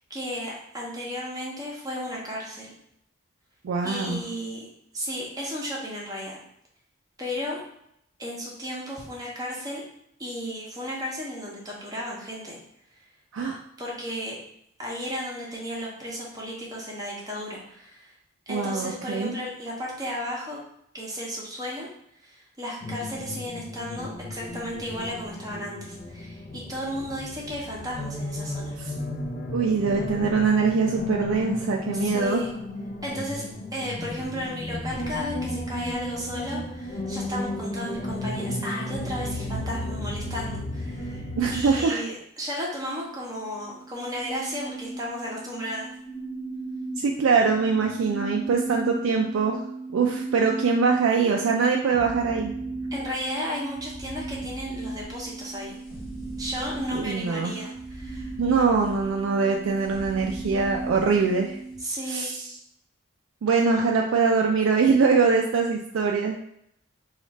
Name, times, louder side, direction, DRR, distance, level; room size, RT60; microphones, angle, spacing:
voice 1, 0.1-2.7 3.8-4.7 4.9-6.4 7.2-7.6 8.2-9.8 10.2-12.6 13.8-14.4 14.8-18.1 18.5-20.6 20.9-21.9 22.2-28.7 31.9-32.5 33.0-33.4 33.7-45.9 52.9-55.8 56.4-58.3 61.8-62.4, equal, 20° right, -3 dB, 0.7 m, -34 dB
voice 2, 3.6-4.2 13.3-13.6 18.5-19.3 28.8-28.9 29.5-32.4 41.3-42.0 47.0-49.6 49.9-52.5 56.9-57.6 58.4-61.6 62.1-62.5 63.4-66.4, right 5 dB, 85° right, 1 dB, 0.3 m, -23 dB
sound 1, 22.8-41.8, left 1 dB, 50° left, 0.5 m, -33 dB
sound 2, 42.9-61.8, right 2 dB, 85° left, 1.0 m, -36 dB
3.2 x 2.4 x 4.0 m, 0.74 s
head